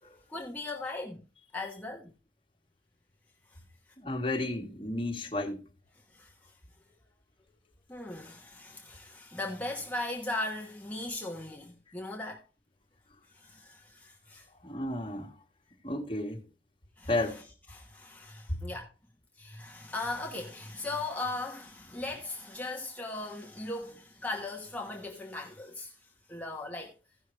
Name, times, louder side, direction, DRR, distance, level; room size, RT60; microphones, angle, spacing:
voice 1, 0.3-1.2 1.5-2.1 6.1-6.3 7.9-12.4 13.3-14.4 17.0-17.4 17.7-18.9 19.4-25.9 26.3-26.9, left 2 dB, 10° left, 1.1 m, -38 dB
voice 2, 4.0-5.6 14.6-15.3 15.8-16.4 17.1-17.4 18.5-18.6, left 2 dB, 30° left, 1.6 m, -32 dB
16.0 x 5.6 x 3.2 m
head